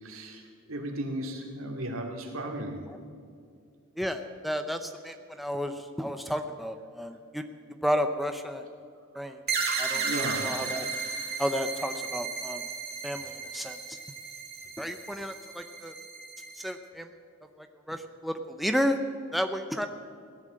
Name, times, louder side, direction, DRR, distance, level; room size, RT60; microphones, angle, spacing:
voice 1, 0.0-2.8 9.9-10.5, right 1 dB, 75° right, 2 dB, 2.5 m, -35 dB
voice 2, 4.0-7.4 7.8-8.6 9.1-9.4 9.8-10.9 11.4-12.6 13.0-14.0 14.8-15.9 16.6-17.1 17.6-19.0 19.3-19.9, equal, ahead, 6 dB, 0.6 m, -32 dB
sound 1, 9.5-16.7, right 5 dB, 50° right, 2.6 m, -34 dB
17.0 x 11.0 x 7.6 m, 2.3 s
head